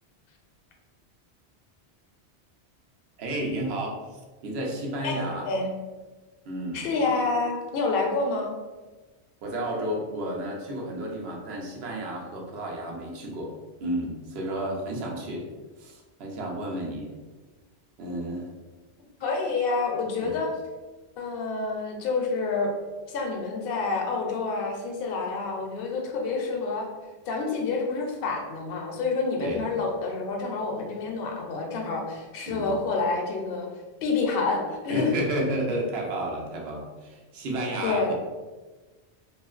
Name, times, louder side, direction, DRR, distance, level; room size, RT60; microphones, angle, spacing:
voice 1, 3.2-4.0 4.4-5.5 6.5-6.9 9.4-13.5 13.8-15.5 15.8-17.1 18.0-18.5 20.2-20.3 29.4-29.6 32.5-32.8 34.9-38.1, right 1 dB, 75° right, -1 dB, 0.8 m, -31 dB
voice 2, 5.0-5.7 6.7-8.5 19.2-20.5 21.2-22.7 23.1-26.9 27.3-33.7 34.0-35.1 37.8-38.1, left 4 dB, 65° left, 1 dB, 0.7 m, -28 dB
2.8 x 2.4 x 2.3 m, 1.3 s
omnidirectional pair, 1.1 m